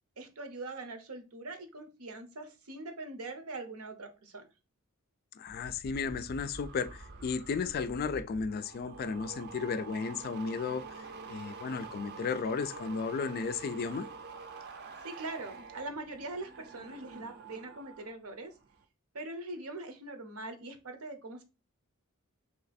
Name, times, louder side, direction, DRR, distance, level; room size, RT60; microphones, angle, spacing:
voice 1, 0.2-4.5 15.0-18.5 19.1-21.4, right 2 dB, 85° right, 0.8 m, -42 dB
voice 2, 5.4-14.1, left 5 dB, 45° left, 0.3 m, -34 dB
sound 1, 5.5-18.1 18.4-18.8, right 4 dB, 50° right, 0.6 m, -47 dB
3.2 x 2.8 x 4.1 m
head